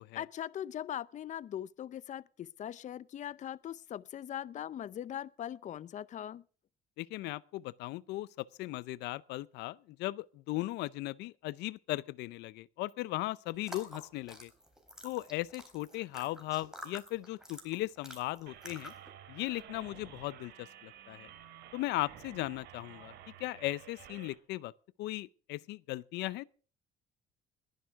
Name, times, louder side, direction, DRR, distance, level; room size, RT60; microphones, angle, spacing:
voice 1, 0.1-6.4, left 10 dB, 45° left, 0.6 m, -40 dB
voice 2, 7.0-8.3 8.6-14.5 15.0-18.9 19.3-21.3 21.7-23.1 23.4-24.7 25.0-26.4, left 18 dB, 85° left, 0.6 m, -37 dB
sound 1, 13.6-19.1, equal, 5° right, 3.9 m, -50 dB
sound 2, 18.5-24.3, right 10 dB, 80° right, 2.8 m, -52 dB
21.0 x 11.0 x 3.6 m
cardioid pair, 110°, 17 cm